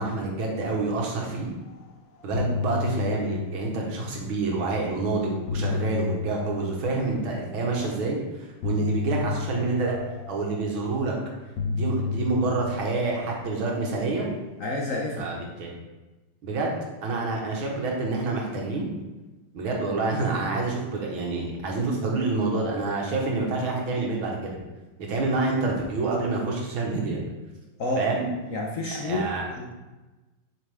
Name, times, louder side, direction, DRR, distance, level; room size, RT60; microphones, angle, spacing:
voice 1, 0.0-1.5 2.2-10.0 10.3-11.2 11.7-14.3 15.2-15.7 16.4-16.7 17.0-18.9 19.5-24.6 25.0-27.2 28.0-28.3 29.0-29.5, right 3 dB, 85° right, -1 dB, 2.1 m, -27 dB
sound 1, 1.7-1.9 2.2-4.5 5.2-7.6 8.6-11.1 11.6-14.1, left 4 dB, 75° left, 1.5 m, -32 dB
voice 2, 14.6-15.3 27.8-28.1 28.5-29.3 29.6-29.7, left 2 dB, 55° left, -1 dB, 0.9 m, -29 dB
7.6 x 5.7 x 3.6 m, 1.1 s
omnidirectional pair, 2.2 m